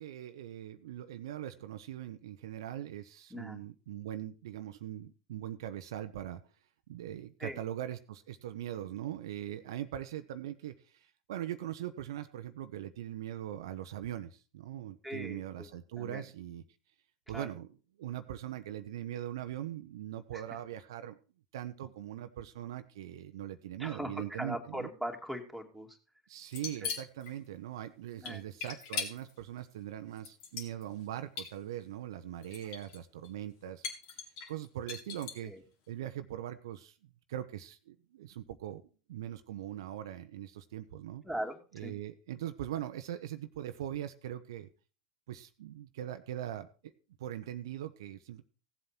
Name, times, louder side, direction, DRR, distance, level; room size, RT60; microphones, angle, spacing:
voice 1, 0.0-6.4 6.9-16.6 17.3-17.7 18.0-21.2 21.5-24.9 26.3-33.8 34.5-35.5 35.9-37.0 37.3-38.8 39.1-41.2 41.7-44.7 45.3-46.9 47.2-48.4, right 12 dB, 70° right, 10 dB, 0.8 m, -41 dB
voice 2, 15.0-15.7 16.0-16.2 17.3-17.5 20.3-20.4 23.8-26.0 26.8-26.9 28.2-28.4 35.4-35.6 41.2-42.0, equal, ahead, 3 dB, 2.7 m, -40 dB
sound 1, 26.5-27.3 28.3-29.3 30.2-31.1 31.4-31.5 32.4-33.0 33.2-33.3 33.8-35.5, left 6 dB, 60° left, 2.7 m, -39 dB
16.5 x 7.9 x 4.4 m, 0.34 s
figure-of-eight pair, 80°, 2 cm